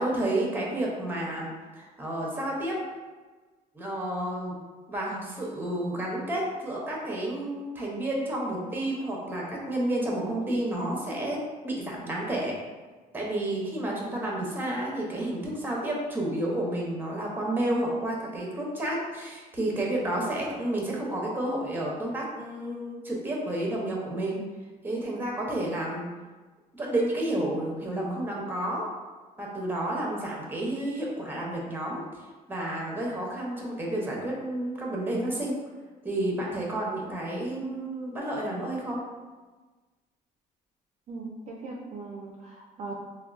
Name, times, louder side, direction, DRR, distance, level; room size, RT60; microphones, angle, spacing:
voice 1, 0.0-1.5 1.8-2.8 3.7-4.6 4.9-12.5 13.1-24.4 24.8-26.1 26.7-28.8 29.4-32.0 32.5-35.6 36.0-39.0, right 1 dB, 10° right, -2 dB, 0.7 m, -30 dB
voice 2, 37.5-37.9 41.1-43.0, right 3 dB, 45° right, -2 dB, 0.4 m, -39 dB
3.5 x 2.2 x 2.3 m, 1.3 s
cardioid pair, 110°, 17 cm